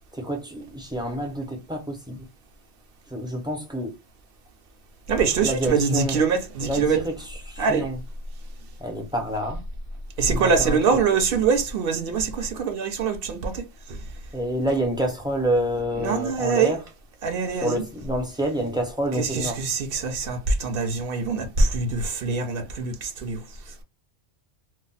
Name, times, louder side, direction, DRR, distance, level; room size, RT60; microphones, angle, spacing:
voice 1, 0.2-2.2 3.1-3.9 5.4-6.2 6.6-8.0 8.8-9.6 10.2-11.0 14.3-16.8 17.5-19.6, right 1 dB, 5° right, 0.3 m, -28 dB
voice 2, 5.1-7.0 7.6-7.9 10.2-14.0 16.0-16.7 17.2-17.8 19.2-23.4, right 5 dB, 60° right, 0.7 m, -24 dB
2.3 x 2.0 x 3.8 m
omnidirectional pair, 1.2 m